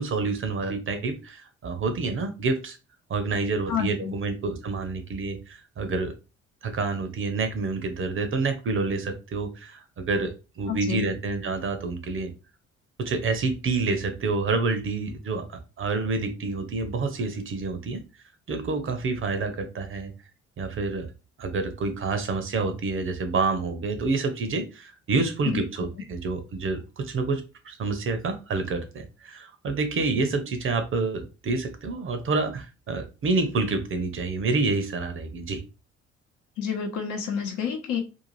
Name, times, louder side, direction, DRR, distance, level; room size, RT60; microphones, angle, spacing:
voice 1, 0.0-2.8 3.1-6.1 6.6-12.3 13.0-18.0 18.5-20.1 20.6-21.1 21.4-35.6, right 3 dB, 35° right, 0.7 m, -28 dB
voice 2, 3.7-4.1 10.7-11.1 25.4-25.6 36.6-38.0, left 7 dB, 55° left, 0.9 m, -29 dB
2.6 x 2.4 x 3.1 m
figure-of-eight pair, 50°, 36 cm